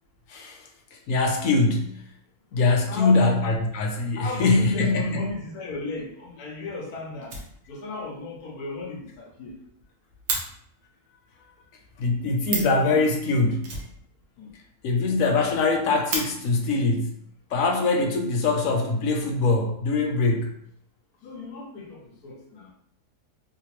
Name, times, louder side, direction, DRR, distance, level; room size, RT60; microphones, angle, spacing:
voice 1, 0.3-2.0 2.5-5.3 12.0-13.7 14.8-17.1 17.5-20.5, left 3 dB, 70° left, 2 dB, 1.1 m, -23 dB
voice 2, 2.9-3.3 4.2-7.3 7.7-9.6 14.4-14.5 15.1-15.2 21.2-22.7, left 3 dB, 85° left, -1 dB, 1.3 m, -35 dB
Fire, 7.2-8.0 8.3-8.4 8.8-8.9 9.1-9.2 9.5-10.4 12.2-12.3 12.4-12.8 13.6-14.5 14.8-14.9 15.2-15.3 15.7-16.2 17.3-17.4 18.0-18.6, right 3 dB, 55° right, 1.0 m, -32 dB
3.3 x 2.9 x 3.0 m, 0.68 s
omnidirectional pair, 1.5 m